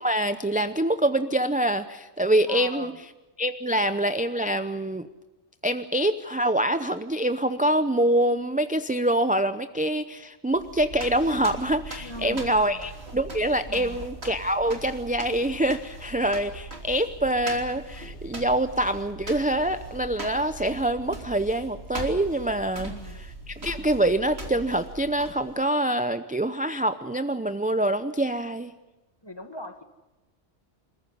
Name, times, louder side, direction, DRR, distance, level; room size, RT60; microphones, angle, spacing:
voice 1, 0.0-2.9 3.4-5.1 5.6-22.9 23.5-28.7, right 1 dB, 10° right, 10 dB, 0.5 m, -25 dB
voice 2, 2.5-3.0 12.0-12.8 13.7-14.0 22.7-23.2 29.2-29.8, left 1 dB, 20° left, 7 dB, 1.6 m, -40 dB
sound 1, 10.5-25.6, right 2 dB, 65° right, 3.6 m, -40 dB
27.0 x 14.5 x 9.5 m, 1.1 s
omnidirectional pair, 1.2 m